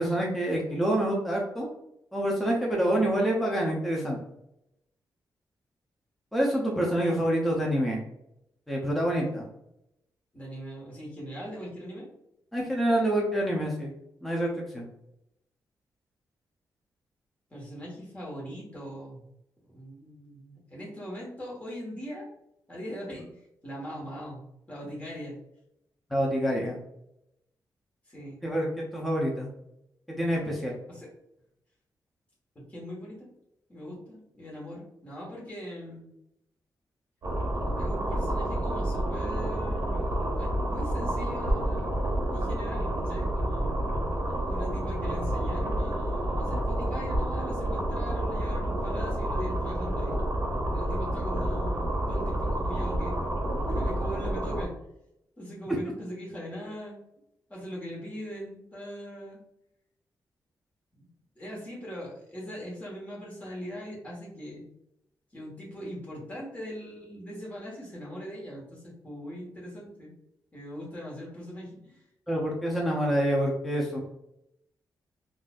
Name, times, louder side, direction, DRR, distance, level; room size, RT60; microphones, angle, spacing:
voice 1, 0.0-1.7 2.1-4.2 6.3-8.0 8.7-9.5 12.5-13.9 14.2-14.9 26.1-26.8 28.4-29.5 30.1-30.7 55.7-55.8 72.3-74.0, right 1 dB, ahead, -3 dB, 0.5 m, -27 dB
voice 2, 10.3-12.1 17.5-19.2 19.7-22.3 22.7-23.3 23.6-25.4 28.1-28.4 30.9-31.1 32.5-33.3 33.7-36.1 37.8-43.8 44.5-50.2 50.7-53.2 53.7-54.8 55.4-57.0 57.5-59.4 61.0-61.1 61.3-64.7 65.3-70.1 70.5-72.0, equal, 20° left, -4 dB, 1.3 m, -41 dB
sound 1, 37.2-54.7, right 1 dB, 40° right, 0.9 m, -29 dB
3.9 x 2.4 x 2.4 m, 0.81 s
wide cardioid pair, 145°, 7 cm